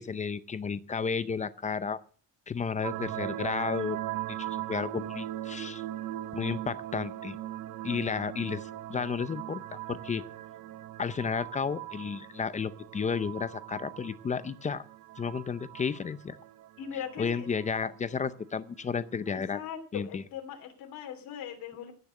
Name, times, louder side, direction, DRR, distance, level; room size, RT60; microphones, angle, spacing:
voice 1, 0.0-2.0 2.5-4.0 4.3-5.8 6.3-7.4 7.8-10.2 11.0-14.8 15.2-16.4 17.2-19.6 19.9-20.2, left 6 dB, 20° left, 14 dB, 0.6 m, -32 dB
sound 1, 2.8-19.4, right 14 dB, 65° right, 0.8 m, -40 dB
voice 2, 16.8-17.5 19.3-21.9, left 9 dB, 75° left, 3 dB, 3.1 m, -40 dB
16.5 x 6.8 x 7.6 m, 0.43 s
cardioid pair, 165°, 35 cm